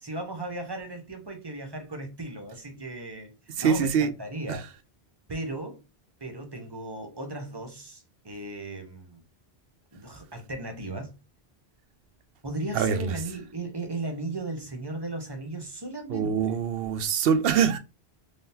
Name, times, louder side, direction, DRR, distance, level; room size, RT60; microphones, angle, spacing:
voice 1, 0.0-3.3 3.6-4.7 5.3-5.8 6.2-9.2 9.9-11.2 12.4-16.6, right 2 dB, 25° right, 0.8 m, -36 dB
voice 2, 3.6-4.1 4.5-4.6 12.7-13.1 16.1-17.8, right 7 dB, 70° right, 0.8 m, -24 dB
3.8 x 3.3 x 2.7 m
omnidirectional pair, 1.1 m